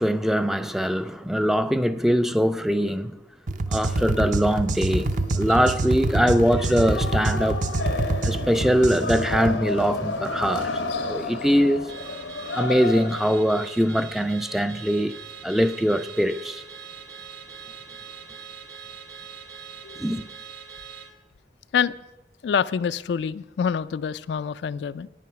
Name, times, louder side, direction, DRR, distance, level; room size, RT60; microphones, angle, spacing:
voice 1, 0.0-3.2 3.7-7.6 8.2-11.9 12.5-15.1 15.4-16.6 20.0-20.2, equal, ahead, 0.3 m, -22 dB
sound 1, 3.5-9.6, right 2 dB, 45° right, 0.6 m, -26 dB
sound 2, 3.9-13.4, left 3 dB, 90° left, 1.0 m, -32 dB
Car / Alarm, 11.9-21.1, right 6 dB, 70° right, 1.7 m, -42 dB
voice 2, 22.4-25.1, left 7 dB, 70° left, 0.3 m, -26 dB
9.4 x 9.2 x 5.9 m
head